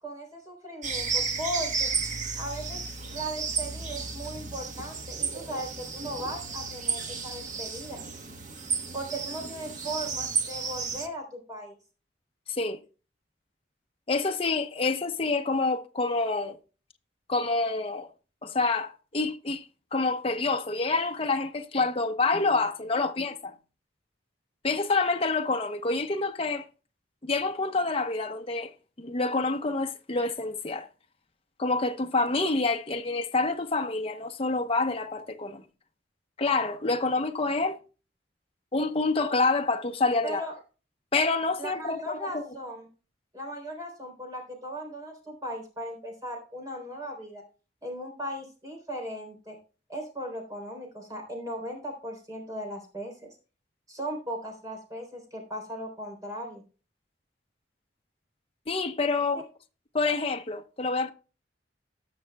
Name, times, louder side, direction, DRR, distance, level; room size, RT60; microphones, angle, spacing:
voice 1, 0.0-1.9 2.4-2.8 3.1-8.0 8.9-11.8 40.2-40.5 41.6-42.9 43.3-47.4 47.8-49.6 49.9-53.1 53.9-56.6, right 1 dB, 20° right, 3.5 m, -37 dB
sound 1, 0.8-11.1, right 5 dB, 45° right, 1.2 m, -33 dB
voice 2, 12.5-12.8 14.1-16.6 17.3-18.1 18.4-19.6 19.9-23.5 24.6-26.6 27.2-28.7 29.0-30.9 31.6-35.6 36.4-37.8 38.7-40.4 41.1-42.4 58.7-59.4 59.9-61.1, left 3 dB, 30° left, 0.8 m, -27 dB
18.5 x 6.3 x 2.3 m
head